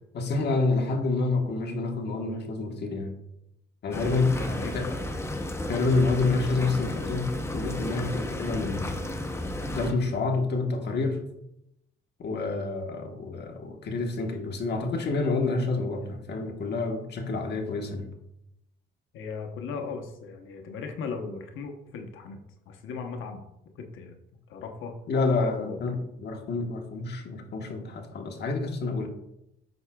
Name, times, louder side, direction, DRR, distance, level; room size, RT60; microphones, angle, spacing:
voice 1, 0.1-3.2 3.8-4.4 4.7-4.9 5.7-9.4 9.7-11.2 12.2-18.1 25.1-29.1, left 3 dB, 60° left, 3 dB, 1.3 m, -28 dB
voice 2, 3.9-4.9 19.1-22.4 22.7-23.4 23.7-24.1 24.5-24.9 25.3-25.8, left 5 dB, 85° left, 4 dB, 0.9 m, -37 dB
sound 1, 3.9-9.9, left 1 dB, 15° left, 0.7 m, -33 dB
7.9 x 6.1 x 2.3 m, 0.81 s
cardioid pair, 90°, 20 cm